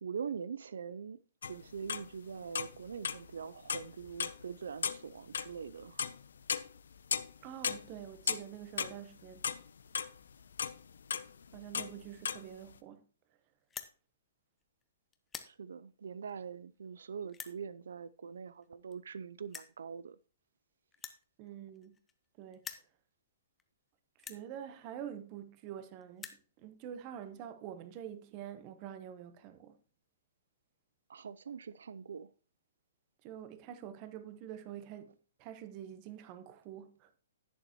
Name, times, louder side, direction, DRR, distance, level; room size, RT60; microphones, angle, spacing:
voice 1, 0.0-1.2 1.5-6.0 15.5-20.2 31.1-32.3, right 6 dB, 85° right, 0.4 m, -43 dB
sound 1, 1.4-2.1 2.4-3.3 3.7-4.4 4.7-7.4 7.6-10.1 10.5-12.4, left 7 dB, 85° left, 0.6 m, -36 dB
voice 2, 7.4-9.5 11.5-13.0 21.4-22.0 22.4-22.6 24.3-29.8 33.2-37.2, right 10 dB, 30° right, 0.9 m, -46 dB
sound 2, 13.6-13.9 14.6-14.8 15.1-15.5 16.3-16.4 17.3-17.6 18.6-18.7 18.9-19.0 19.5-19.8 20.9-22.3 22.5-22.9 23.6-23.7 24.2-24.4 25.4-25.5 25.7-25.8 26.0-26.4, left 7 dB, 10° left, 0.7 m, -46 dB
11.0 x 8.0 x 3.0 m
hypercardioid pair, 160°, 0 cm